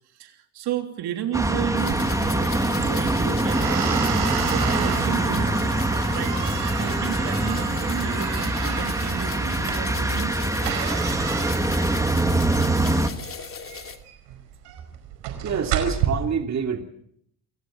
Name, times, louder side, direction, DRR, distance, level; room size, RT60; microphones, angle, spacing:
voice 1, 0.1-5.8 6.1-10.4, right 10 dB, 65° right, 5 dB, 3.2 m, -33 dB
sound 1, 1.3-13.1, right 1 dB, 10° right, 2.0 m, -24 dB
sound 2, 1.7-14.0, left 5 dB, 30° left, 2.7 m, -38 dB
sound 3, 1.9-16.1, right 10 dB, 90° right, 4.9 m, -32 dB
voice 2, 15.4-16.8, right 7 dB, 40° right, 4 dB, 2.6 m, -26 dB
28.5 x 18.0 x 7.4 m, 0.72 s
supercardioid pair, 95°, 41 cm